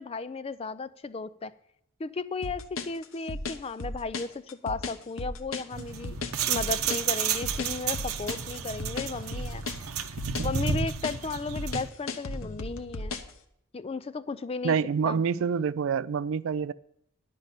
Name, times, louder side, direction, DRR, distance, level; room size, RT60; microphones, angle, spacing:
voice 1, 0.0-1.5 2.0-4.3 4.6-6.2 6.5-9.6 10.4-13.2 13.7-14.8 15.1-15.2, left 4 dB, 25° left, 14 dB, 0.3 m, -34 dB
sound 1, 2.4-13.3, left 3 dB, 65° left, 0.8 m, -35 dB
sound 2, 5.7-11.9, right 7 dB, 80° right, 0.8 m, -32 dB
voice 2, 14.6-16.7, right 6 dB, 60° right, 17 dB, 0.3 m, -27 dB
11.0 x 5.4 x 8.1 m, 0.74 s
head